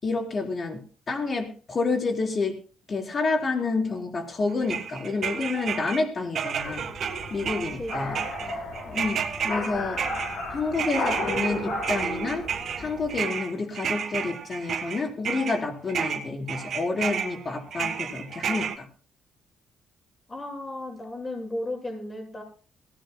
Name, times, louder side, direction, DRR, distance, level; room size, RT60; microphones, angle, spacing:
voice 1, 0.0-2.6 2.9-6.9 7.3-8.2 8.4-8.5 8.9-10.0 10.5-12.5 12.8-18.9, left 3 dB, 40° left, 2 dB, 4.2 m, -29 dB
sound 1, 4.6-6.0 6.4-15.6 15.9-18.8, right 7 dB, 60° right, 1.7 m, -31 dB
sound 2, 6.6-13.2, left 2 dB, 70° left, 4.1 m, -34 dB
voice 2, 7.8-9.1 20.3-22.4, left 1 dB, 25° left, 1 dB, 7.4 m, -36 dB
22.0 x 16.5 x 2.2 m, 0.39 s
cardioid pair, 90°, 0 cm